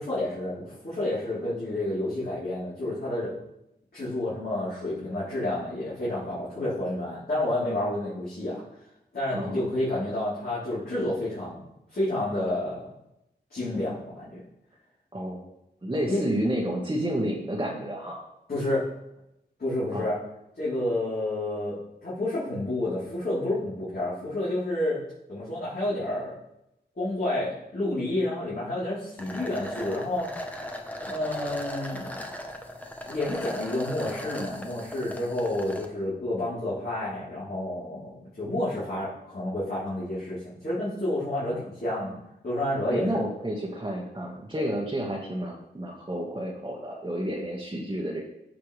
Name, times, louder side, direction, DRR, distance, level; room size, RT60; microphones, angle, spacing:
voice 1, 0.0-3.3 3.9-8.5 9.1-11.6 11.9-12.9 13.5-14.4 16.1-16.2 18.5-18.9 19.6-20.2 20.6-25.0 25.3-26.3 27.0-30.7 31.1-32.2 33.1-42.1 42.4-43.2, left 1 dB, 55° left, -12 dB, 3.9 m, -30 dB
voice 2, 15.8-18.2 19.9-20.1 41.4-41.6 42.9-48.2, right 1 dB, 25° right, -4 dB, 1.6 m, -30 dB
sound 1, 29.2-35.9, left 1 dB, 10° left, 1.1 m, -38 dB
14.5 x 5.8 x 3.4 m, 0.87 s
wide cardioid pair, 90°, 19 cm